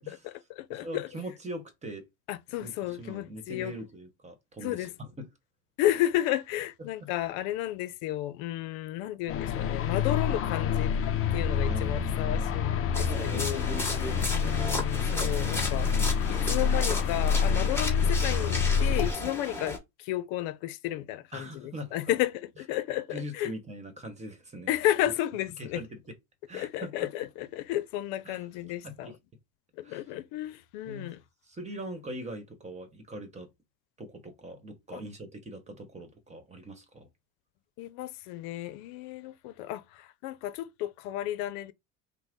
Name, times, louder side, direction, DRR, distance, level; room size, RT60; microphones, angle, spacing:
voice 1, 0.1-1.1 2.3-3.7 4.6-4.9 5.8-10.9 11.3-15.9 16.3-23.5 24.7-25.8 26.5-29.2 29.8-31.2 34.9-35.0 37.8-41.7, left 14 dB, 75° left, 0.6 m, -33 dB
voice 2, 0.7-2.0 2.6-5.3 6.8-7.1 11.5-13.5 21.3-21.9 23.1-24.7 25.6-26.1 26.5-27.1 28.2-28.4 28.8-29.2 29.8-30.0 30.9-31.1 31.4-33.5 34.0-37.1, right 1 dB, 20° right, 1.1 m, -42 dB
sound 1, 9.3-19.1, left 7 dB, 35° left, 0.6 m, -27 dB
sound 2, 12.9-19.8, left 2 dB, 5° left, 1.3 m, -34 dB
5.8 x 2.1 x 3.7 m
cardioid pair, 135°, 38 cm